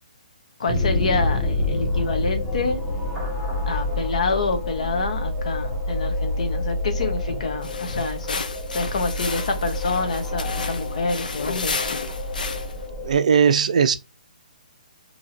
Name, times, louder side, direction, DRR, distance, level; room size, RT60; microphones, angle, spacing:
voice 1, 0.6-2.8 3.7-8.4 8.7-11.7, left 3 dB, 50° left, 0.9 m, -27 dB
sound 1, 0.7-13.1, left 2 dB, ahead, 0.8 m, -27 dB
sound 2, 7.6-12.9, left 4 dB, 75° left, 0.6 m, -32 dB
voice 2, 13.0-14.0, right 6 dB, 55° right, 0.4 m, -18 dB
2.8 x 2.6 x 4.3 m
hypercardioid pair, 175°, 5 cm